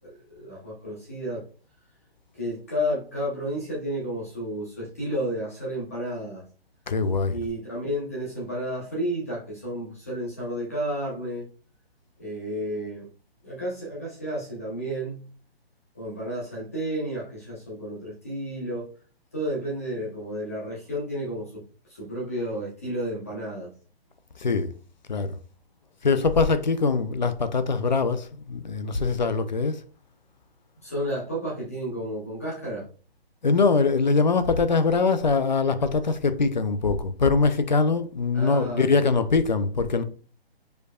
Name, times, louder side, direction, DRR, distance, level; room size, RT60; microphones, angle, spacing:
voice 1, 0.0-1.4 2.3-6.4 7.3-11.5 12.2-13.1 13.4-15.2 15.9-18.9 19.3-23.7 30.8-32.9 38.3-39.1, equal, 15° left, 0.8 m, -32 dB
voice 2, 6.9-7.4 24.4-24.7 25.1-25.3 26.0-29.8 33.4-40.0, left 4 dB, 45° left, 0.5 m, -23 dB
5.1 x 4.5 x 2.3 m
hypercardioid pair, 180°, 31 cm